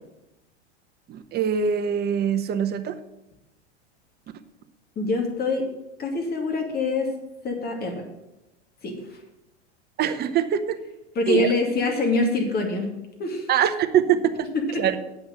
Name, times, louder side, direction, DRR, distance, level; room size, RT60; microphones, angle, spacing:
voice 1, 1.1-3.0 10.0-10.8 11.3-11.5 13.5-14.5 14.8-15.0, right 8 dB, 30° right, 10 dB, 0.8 m, -23 dB
voice 2, 5.0-5.7 6.0-7.1 7.4-8.0 8.8-9.2 11.2-12.9 13.2-13.5 14.5-14.6, left 3 dB, 25° left, 2 dB, 2.4 m, -25 dB
8.6 x 6.0 x 7.5 m, 0.93 s
hypercardioid pair, 95°, 34 cm